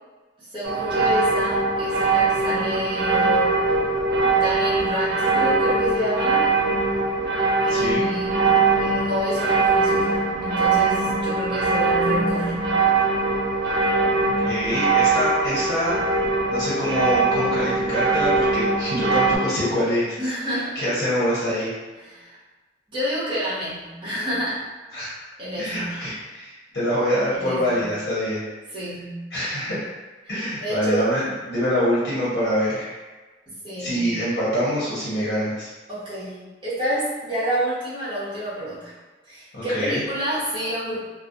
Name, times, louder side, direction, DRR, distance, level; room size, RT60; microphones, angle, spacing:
voice 1, 0.4-3.6 4.2-6.5 7.6-12.8 20.2-20.8 22.0-22.4 22.9-24.6 25.0-25.1 25.4-26.0 27.3-27.9 28.7-29.3 30.2-30.3 30.6-31.1 33.5-34.0 35.9-38.9 39.3-41.0, equal, 25° right, -11 dB, 0.9 m, -29 dB
sound 1, 0.6-19.4, right 3 dB, 60° right, 0.3 m, -21 dB
voice 2, 7.7-8.1 14.4-16.0 16.5-20.2 20.7-21.7 24.9-25.1 25.6-28.4 29.3-29.9 30.3-32.9 33.8-35.7 39.5-40.0, equal, 65° left, -9 dB, 0.8 m, -25 dB
2.3 x 2.0 x 2.6 m, 1.3 s
head